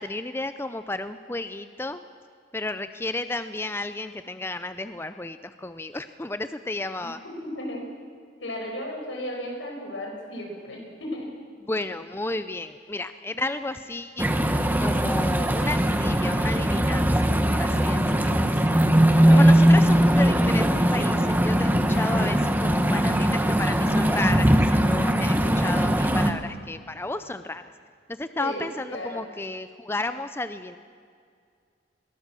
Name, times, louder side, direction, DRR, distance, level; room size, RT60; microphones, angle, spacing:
voice 1, 0.0-2.0 2.5-7.2 11.6-14.3 14.8-18.7 19.3-27.6 28.1-30.8, left 2 dB, 10° left, 11 dB, 0.5 m, -32 dB
voice 2, 7.2-7.9 8.4-11.3 19.2-19.5 25.3-25.7 28.4-28.6 28.9-29.2, left 1 dB, 80° left, 0 dB, 5.6 m, -35 dB
sound 1, 14.2-26.3, equal, 10° right, 1.0 m, -20 dB
22.0 x 17.5 x 7.5 m, 2.2 s
head